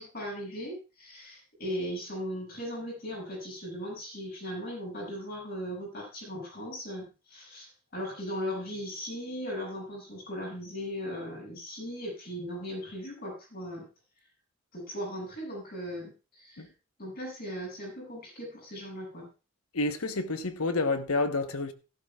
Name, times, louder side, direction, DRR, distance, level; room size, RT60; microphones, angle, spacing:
voice 1, 0.0-13.9 14.7-16.7 17.0-19.3, equal, 45° left, 7.5 m, -38 dB
voice 2, 19.7-21.7, left 3 dB, 90° left, 1.1 m, -29 dB
15.5 x 12.5 x 2.4 m
head